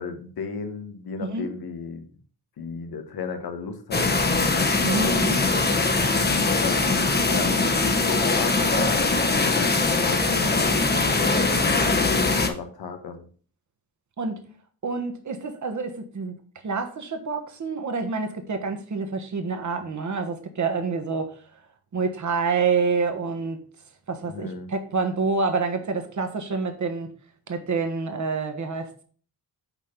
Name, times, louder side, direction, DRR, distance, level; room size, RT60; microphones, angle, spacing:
voice 1, 0.0-2.0 2.6-4.1 5.0-5.3 6.2-11.1 11.8-13.3 24.2-24.7, left 5 dB, 80° left, 7 dB, 1.1 m, -35 dB
voice 2, 1.2-1.5 4.8-5.4 14.2-14.4 14.8-16.4 16.6-21.4 21.9-23.6 24.1-27.1 27.5-29.0, right 4 dB, 50° right, 6 dB, 1.4 m, -27 dB
sound 1, 3.9-12.5, left 3 dB, 25° left, 1.0 m, -22 dB
5.8 x 4.3 x 5.6 m, 0.43 s
cardioid pair, 80°, 37 cm